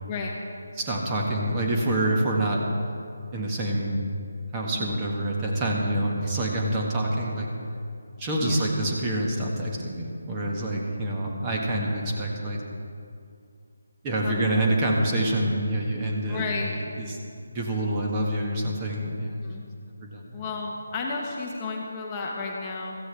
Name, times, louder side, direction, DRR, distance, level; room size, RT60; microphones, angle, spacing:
voice 1, 0.1-0.4 4.7-5.0 8.4-8.6 11.7-12.0 14.2-14.4 16.3-16.8 19.4-19.6 20.3-23.0, left 4 dB, 20° left, -1 dB, 1.1 m, -33 dB
voice 2, 0.8-2.6 3.3-4.0 4.5-7.5 8.2-12.6 14.0-17.2 17.5-19.4 20.0-20.4, right 1 dB, 20° right, -2 dB, 1.7 m, -27 dB
16.0 x 14.0 x 3.5 m, 2.4 s
figure-of-eight pair, 150°, 0 cm